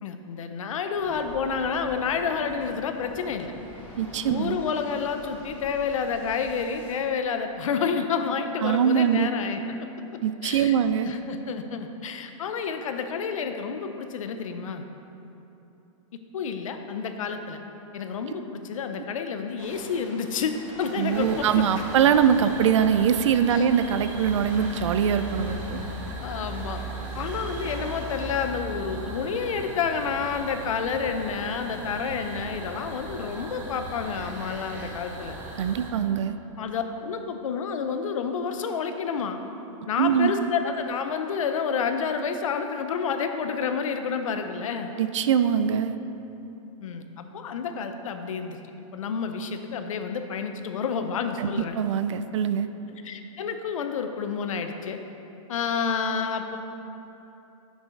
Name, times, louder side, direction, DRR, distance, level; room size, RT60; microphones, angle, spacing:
voice 1, 0.0-3.5 4.2-9.7 10.1-10.8 11.0-14.8 16.3-17.6 17.9-21.6 23.5-23.7 26.2-26.8 27.1-35.4 36.6-39.4 39.9-44.9 46.8-48.6 48.9-51.7 53.0-55.0 55.5-56.6, left 6 dB, 75° left, 7 dB, 0.7 m, -29 dB
Waves surf, 1.0-6.9, left 1 dB, 10° left, 0.9 m, -46 dB
voice 2, 4.0-4.6 8.6-9.3 10.2-11.1 21.0-25.8 35.6-36.4 40.0-40.5 45.0-46.0 51.4-52.7, right 8 dB, 60° right, 11 dB, 0.4 m, -23 dB
sound 1, 19.6-28.5, right 1 dB, 30° right, 1.1 m, -45 dB
sound 2, 21.1-35.9, right 2 dB, 10° right, 0.5 m, -38 dB
6.9 x 6.7 x 4.5 m, 2.9 s
supercardioid pair, 175°, 17 cm